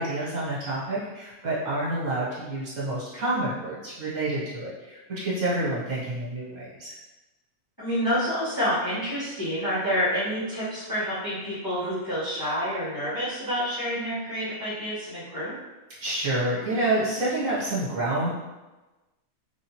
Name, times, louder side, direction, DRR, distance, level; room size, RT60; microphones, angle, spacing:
voice 1, 0.0-6.9 16.0-18.3, right 2 dB, 65° right, -8 dB, 1.6 m, -28 dB
voice 2, 7.8-15.5, equal, 15° left, -11 dB, 1.0 m, -28 dB
3.4 x 2.5 x 3.0 m, 1.1 s
omnidirectional pair, 1.5 m